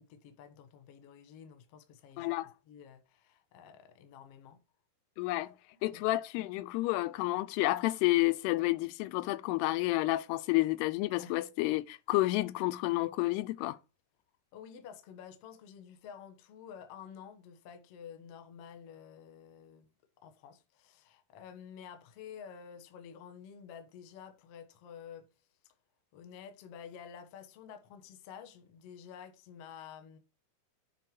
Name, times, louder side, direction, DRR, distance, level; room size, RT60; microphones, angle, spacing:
voice 1, 0.0-4.6 5.9-6.2 11.2-11.4 14.5-19.9 20.2-25.3 26.1-30.2, left 8 dB, 60° left, 1.6 m, -50 dB
voice 2, 2.2-2.5 5.2-5.5 5.8-13.8, left 18 dB, 90° left, 2.7 m, -30 dB
9.1 x 4.5 x 4.8 m
omnidirectional pair, 4.6 m